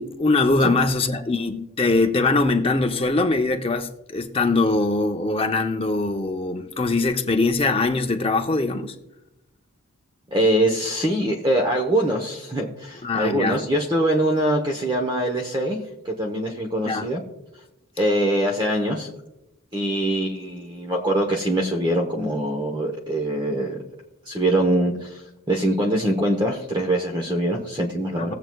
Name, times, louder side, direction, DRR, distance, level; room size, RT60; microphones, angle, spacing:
voice 1, 0.0-9.0 13.0-13.6 16.9-17.1 28.2-28.3, left 3 dB, 25° left, 0.6 m, -22 dB
voice 2, 10.3-15.8 16.0-17.2 18.0-19.1 19.7-23.8 24.3-25.2 25.5-28.3, right 1 dB, 20° right, 0.9 m, -23 dB
18.5 x 7.7 x 2.3 m
head